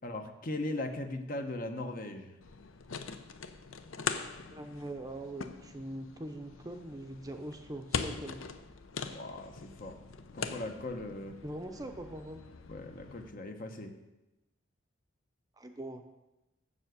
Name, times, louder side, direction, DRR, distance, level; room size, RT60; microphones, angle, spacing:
voice 1, 0.0-2.3 9.0-10.0 10.3-11.4 12.7-14.0, left 2 dB, 45° left, 6 dB, 0.8 m, -39 dB
sound 1, 2.4-13.3, left 5 dB, 85° left, 0.6 m, -42 dB
voice 2, 4.5-8.4 11.4-12.4 15.6-16.1, right 1 dB, 20° right, 6 dB, 0.6 m, -42 dB
7.2 x 6.7 x 7.9 m, 1.0 s
head